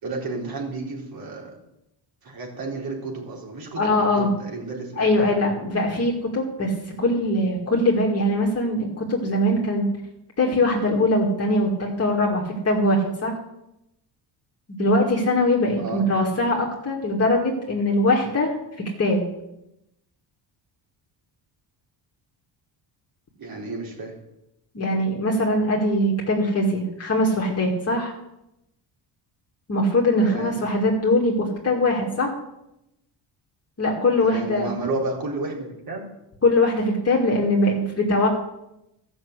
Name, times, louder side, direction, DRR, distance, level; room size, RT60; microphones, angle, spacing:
voice 1, 0.0-1.6 2.2-5.6 15.8-16.1 23.4-24.2 30.2-30.6 34.2-36.1, right 3 dB, 55° right, -1 dB, 4.1 m, -32 dB
voice 2, 3.8-4.3 5.0-6.7 7.0-9.8 10.4-13.3 14.8-19.2 24.7-28.1 29.7-32.3 33.8-34.7 36.4-38.3, left 1 dB, 35° left, -1 dB, 2.2 m, -22 dB
14.0 x 6.3 x 8.1 m, 0.88 s
cardioid pair, 110°, 44 cm